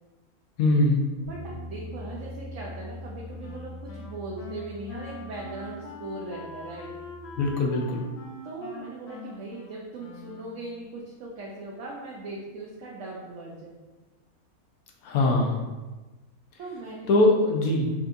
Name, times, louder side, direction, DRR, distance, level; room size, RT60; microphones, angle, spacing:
voice 1, 0.6-1.0 7.4-8.1 15.0-15.6 17.1-17.9, left 2 dB, 75° left, 0 dB, 1.1 m, -22 dB
Bass guitar, 1.2-7.5, left 2 dB, 35° right, 0.9 m, -43 dB
voice 2, 1.2-6.9 8.4-13.8 16.6-17.1, right 2 dB, 65° right, -4 dB, 0.9 m, -39 dB
Wind instrument woodwind instrument, 3.4-10.8, left 3 dB, 60° left, 0.7 m, -43 dB
5.4 x 2.6 x 2.6 m, 1.2 s
omnidirectional pair, 1.5 m